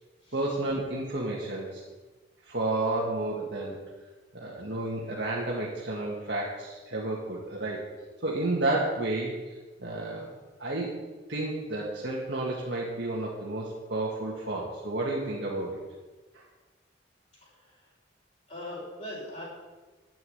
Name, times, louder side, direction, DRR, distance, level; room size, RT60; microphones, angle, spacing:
voice 1, 0.3-1.8 2.4-3.8 4.3-7.9 8.2-9.4 9.8-10.3 10.6-11.0 11.3-15.8, right 2 dB, 60° right, -4 dB, 2.0 m, -31 dB
voice 2, 18.5-19.4, left 1 dB, 35° left, -6 dB, 5.3 m, -39 dB
11.0 x 9.3 x 8.0 m, 1.3 s
head